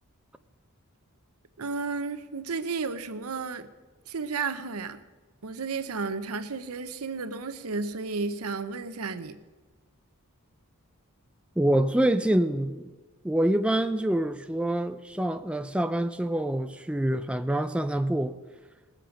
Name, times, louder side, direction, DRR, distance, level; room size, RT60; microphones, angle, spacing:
voice 1, 1.6-3.7 4.1-5.0 5.4-9.4, right 4 dB, 75° right, 0.8 m, -33 dB
voice 2, 11.6-12.9 13.2-18.4, right 1 dB, 5° right, 0.3 m, -26 dB
20.0 x 7.6 x 5.1 m
head